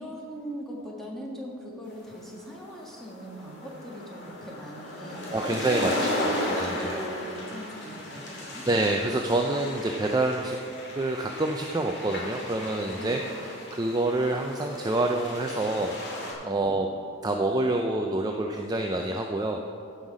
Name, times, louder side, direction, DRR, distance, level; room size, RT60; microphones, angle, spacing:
voice 1, 0.0-8.7 13.0-13.3 16.5-16.8, right 1 dB, ahead, -3 dB, 1.5 m, -40 dB
sound 1, 2.1-16.3, left 1 dB, 50° left, 2.4 m, -36 dB
voice 2, 5.3-7.0 8.7-10.6 10.9-16.0 16.4-16.9 17.2-19.6, right 2 dB, 20° right, 2 dB, 0.4 m, -27 dB
15.5 x 5.6 x 5.1 m, 2.5 s
head